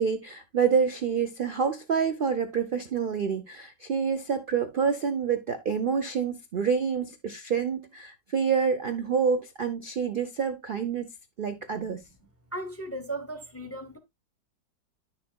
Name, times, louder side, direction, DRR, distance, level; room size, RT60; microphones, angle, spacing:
voice 1, 0.0-11.1 11.4-12.0, right 6 dB, 50° right, 0.6 m, -27 dB
voice 2, 12.5-14.0, right 1 dB, 10° left, 0.7 m, -36 dB
10.5 x 6.6 x 2.2 m
omnidirectional pair, 1.8 m